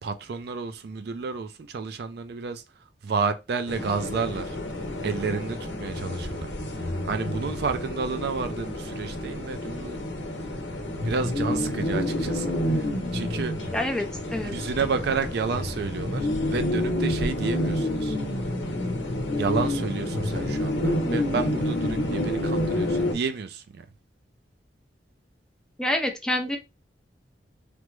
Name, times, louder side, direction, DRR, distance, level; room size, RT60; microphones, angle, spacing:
voice 1, 0.0-2.6 3.0-4.6 5.0-6.5 7.0-10.0 10.4-10.5 11.0-12.9 13.1-13.5 14.4-18.2 19.4-23.9, right 5 dB, 60° right, 0.4 m, -30 dB
sound 1, 3.7-23.1, left 1 dB, 90° left, 0.8 m, -29 dB
voice 2, 13.7-14.1 14.3-14.5 25.8-26.6, left 1 dB, 5° left, 0.4 m, -26 dB
3.3 x 2.0 x 3.0 m
head